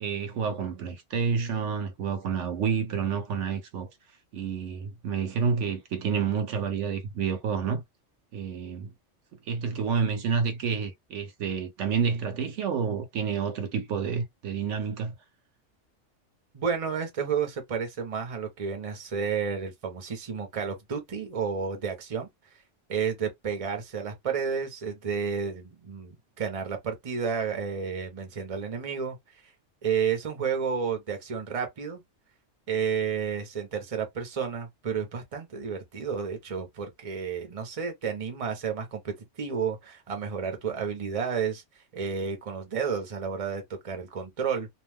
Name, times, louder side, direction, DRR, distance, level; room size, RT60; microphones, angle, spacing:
voice 1, 0.0-3.9 4.3-7.8 8.3-8.9 9.5-15.1, right 6 dB, 75° right, 1.0 m, -29 dB
voice 2, 16.5-22.3 22.9-29.2 29.8-32.0 32.7-41.6 41.9-44.7, right 6 dB, 35° right, 0.8 m, -31 dB
2.5 x 2.2 x 3.3 m
omnidirectional pair, 1.2 m